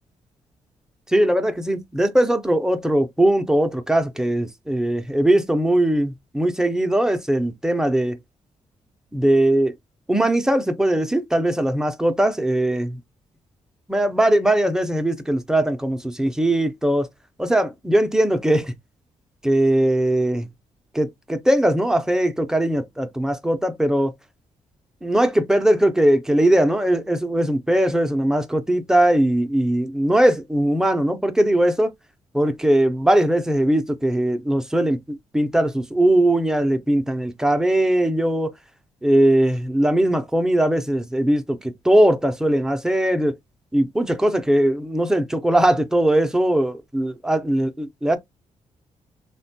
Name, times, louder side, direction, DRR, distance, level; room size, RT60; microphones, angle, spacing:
voice 1, 1.1-8.2 9.1-9.7 10.1-13.0 13.9-17.1 17.4-18.7 19.4-20.5 20.9-24.1 25.0-31.9 32.3-38.5 39.0-43.3 43.7-48.2, right 1 dB, 5° right, 0.4 m, -20 dB
3.9 x 2.2 x 2.6 m
wide cardioid pair, 140°, 12 cm